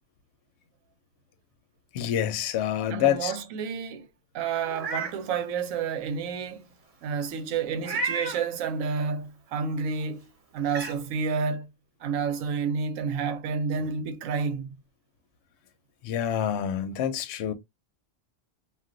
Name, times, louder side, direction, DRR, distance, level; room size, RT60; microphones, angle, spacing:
voice 1, 1.9-3.3 16.0-17.5, left 10 dB, 65° left, 0.8 m, -27 dB
voice 2, 2.9-4.1 4.3-6.7 7.0-11.7 12.0-14.8, right 5 dB, 85° right, 1.0 m, -30 dB
Meow, 4.6-5.2 5.7-5.8 7.8-8.4 10.0-10.1 10.7-11.0, right 4 dB, 40° right, 0.5 m, -31 dB
2.3 x 2.2 x 3.6 m
omnidirectional pair, 1.3 m